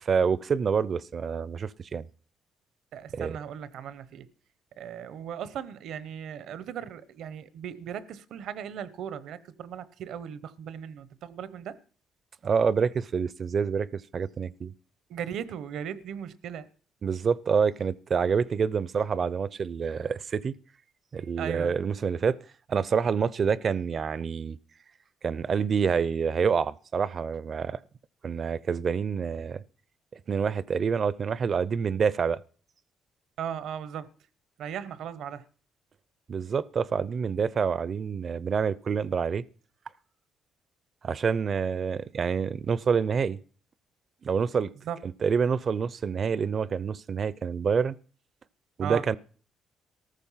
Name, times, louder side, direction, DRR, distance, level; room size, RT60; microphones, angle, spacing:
voice 1, 0.0-2.1 3.1-3.3 12.4-14.7 17.0-20.5 21.1-22.4 22.7-24.6 25.2-27.8 28.2-29.6 30.3-32.4 36.3-39.4 41.0-43.4 44.2-44.7 45.2-48.0 48.8-49.2, right 6 dB, 50° right, 0.6 m, -27 dB
voice 2, 2.9-4.3 4.8-11.8 15.1-16.7 21.4-21.8 33.4-34.1 34.6-35.5 44.9-45.0 48.8-49.0, right 8 dB, 75° right, 0.9 m, -37 dB
14.0 x 13.5 x 5.7 m
cardioid pair, 90°, 0 cm